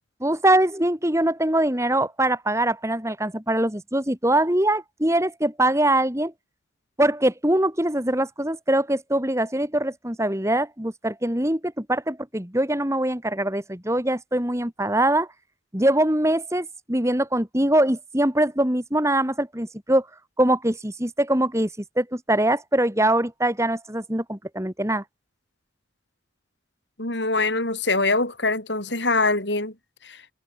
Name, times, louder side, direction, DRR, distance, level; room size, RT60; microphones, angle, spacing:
voice 1, 0.2-6.3 7.0-15.3 15.7-20.1 20.4-21.7 22.0-25.0, right 1 dB, 15° right, 3.0 m, -23 dB
voice 2, 27.0-29.7, left 3 dB, 70° left, 7.7 m, -23 dB
head